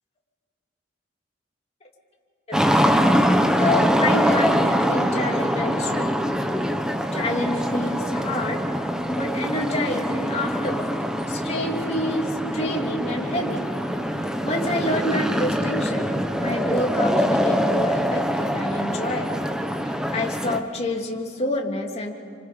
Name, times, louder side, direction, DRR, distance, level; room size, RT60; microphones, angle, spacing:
sound 1, 2.5-20.6, equal, 5° right, 1.1 m, -23 dB
voice 1, 3.6-6.2 7.1-8.6 9.1-11.0 11.3-13.6 14.4-19.5 19.8-22.2, left 1 dB, 35° left, 0 dB, 2.9 m, -28 dB
29.5 x 25.5 x 5.3 m, 2.3 s
head